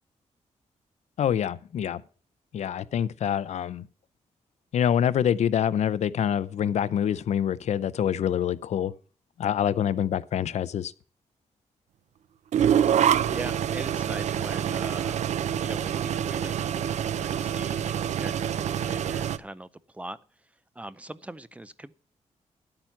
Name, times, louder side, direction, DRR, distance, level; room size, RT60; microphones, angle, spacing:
voice 1, 1.2-2.0 2.5-3.8 4.7-8.9 9.4-10.9, left 9 dB, 70° left, 0.5 m, -26 dB
sound 1, 12.5-19.4, right 9 dB, 75° right, 0.5 m, -26 dB
voice 2, 13.3-20.2 20.8-21.9, right 1 dB, 10° right, 0.5 m, -41 dB
10.5 x 8.9 x 5.9 m
wide cardioid pair, 160°, 12 cm